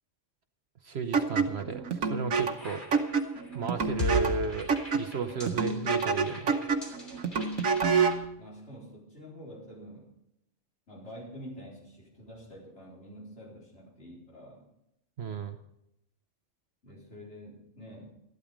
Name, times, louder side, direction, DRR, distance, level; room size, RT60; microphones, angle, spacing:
voice 1, 0.8-2.8 3.5-4.7 4.9-6.6 15.2-15.6, right 5 dB, 60° right, 8 dB, 1.0 m, -34 dB
sound 1, 1.1-8.3, right 5 dB, 85° right, 1.4 m, -28 dB
sound 2, 2.3-8.1, equal, 35° left, 3.4 m, -38 dB
voice 2, 7.9-10.1 10.9-14.7 16.8-18.1, equal, 60° left, -5 dB, 4.4 m, -47 dB
13.5 x 12.0 x 5.1 m, 0.80 s
omnidirectional pair, 1.4 m